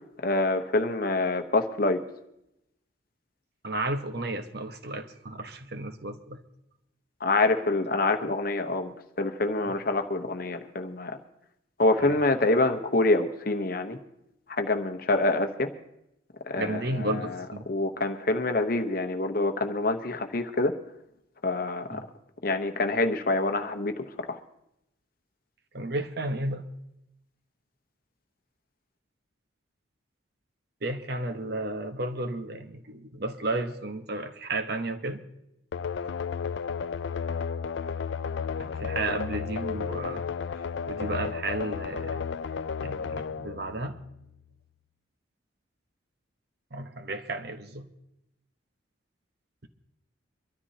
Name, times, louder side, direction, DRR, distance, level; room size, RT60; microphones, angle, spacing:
voice 1, 0.2-2.0 7.2-11.2 11.8-14.0 14.5-15.7 16.4-20.7 21.4-22.0 22.4-24.4, left 2 dB, 45° left, 6 dB, 0.9 m, -26 dB
voice 2, 3.6-6.4 12.0-12.1 16.6-17.7 21.9-22.0 25.7-26.7 30.8-35.2 38.6-40.2 40.9-42.2 42.8-44.0 46.7-47.9, right 2 dB, 55° right, 8 dB, 1.1 m, -33 dB
sound 1, 35.7-44.4, left 6 dB, 65° left, 0.4 m, -33 dB
24.0 x 13.0 x 2.8 m, 0.83 s
head